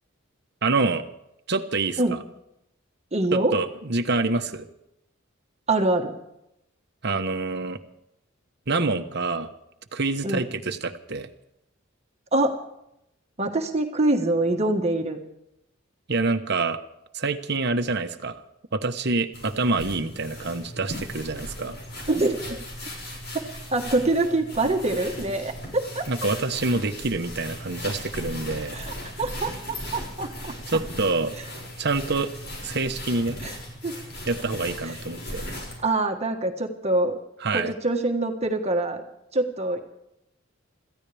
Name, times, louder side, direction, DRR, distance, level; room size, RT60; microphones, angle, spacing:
voice 1, 0.6-1.0 1.5-2.2 3.3-4.6 7.0-7.8 8.7-9.5 9.9-11.3 16.1-16.8 17.1-18.4 18.7-21.8 26.1-28.8 30.7-31.3 31.8-32.3 32.6-33.4 34.3-35.4 37.4-37.7, right 3 dB, 55° right, 8 dB, 1.2 m, -26 dB
voice 2, 3.1-3.5 5.7-6.1 10.2-10.4 12.3-12.6 13.4-15.2 22.1-22.6 23.3-26.1 28.7-30.8 33.4-33.5 33.8-34.0 35.8-37.2 37.5-39.0 39.3-39.8, right 2 dB, 35° right, 3 dB, 1.6 m, -25 dB
sound 1, 19.3-35.8, left 1 dB, 60° left, 6.4 m, -37 dB
26.5 x 15.0 x 3.5 m, 0.82 s
head